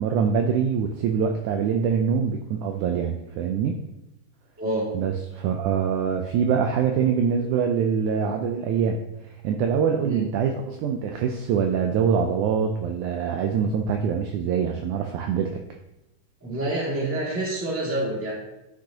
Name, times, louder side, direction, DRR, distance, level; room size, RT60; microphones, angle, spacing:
voice 1, 0.0-3.8 4.9-9.0 9.4-15.6, right 7 dB, 85° right, 4 dB, 1.8 m, -24 dB
voice 2, 16.4-18.3, right 2 dB, 5° right, -4 dB, 1.1 m, -27 dB
10.5 x 6.4 x 2.8 m, 0.93 s
omnidirectional pair, 4.0 m